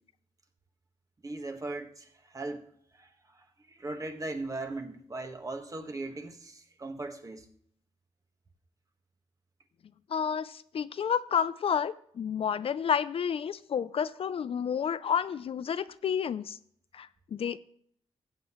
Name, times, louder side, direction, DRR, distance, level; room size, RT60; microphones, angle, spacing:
voice 1, 1.2-2.7 2.9-7.5, right 2 dB, 30° right, 1.4 m, -39 dB
voice 2, 10.1-16.6 16.9-17.6, left 7 dB, 55° left, 0.4 m, -30 dB
14.5 x 8.1 x 3.1 m
cardioid pair, 75°, 11 cm